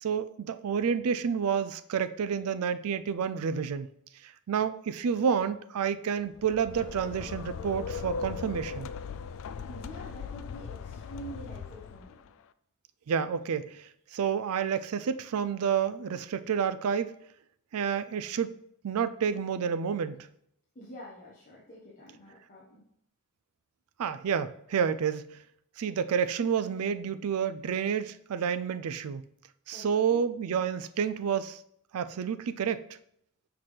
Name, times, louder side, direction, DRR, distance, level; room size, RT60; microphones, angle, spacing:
voice 1, 0.0-3.9 4.2-8.9 13.1-17.1 17.7-18.5 18.8-20.3 24.0-25.4 25.8-29.3 29.7-31.6 31.9-32.8, right 7 dB, 75° right, 13 dB, 0.4 m, -29 dB
sound 1, 6.3-12.3, left 6 dB, 60° left, 0.3 m, -39 dB
voice 2, 9.3-12.2 20.7-22.8 29.7-30.2, equal, 35° left, -6 dB, 1.2 m, -47 dB
6.0 x 5.8 x 3.3 m, 0.72 s
head